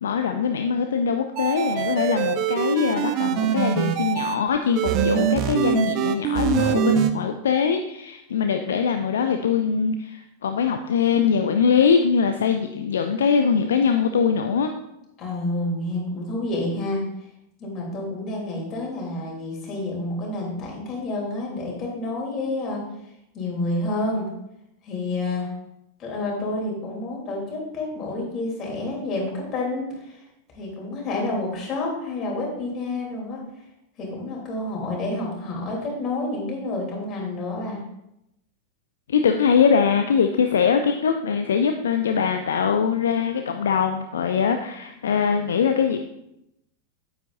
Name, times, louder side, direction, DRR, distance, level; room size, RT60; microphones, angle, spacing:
voice 1, 0.0-14.7 39.1-46.0, left 6 dB, 65° left, 6 dB, 0.5 m, -22 dB
sound 1, 1.4-4.3 4.7-7.1, right 9 dB, 40° right, 0.7 m, -23 dB
voice 2, 15.2-17.0 17.6-22.8 23.3-24.3 24.8-25.5 26.0-30.2 30.5-33.4 34.0-37.8, left 2 dB, 30° left, -2 dB, 3.2 m, -29 dB
9.1 x 8.7 x 2.6 m, 0.84 s
figure-of-eight pair, 90°, 0 cm